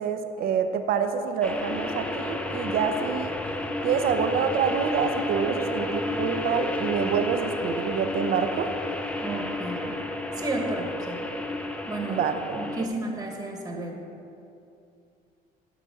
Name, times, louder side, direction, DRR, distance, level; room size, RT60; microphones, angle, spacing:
voice 1, 0.0-3.4 3.8-8.7 12.1-12.6, right 7 dB, 65° right, 8 dB, 0.6 m, -27 dB
sound 1, 1.4-12.9, left 1 dB, 5° left, 0.6 m, -31 dB
voice 2, 9.2-11.2 11.9-12.3 12.6-14.2, right 2 dB, 20° right, 1 dB, 1.2 m, -33 dB
11.0 x 4.0 x 7.3 m, 2.6 s
cardioid pair, 110°, 17 cm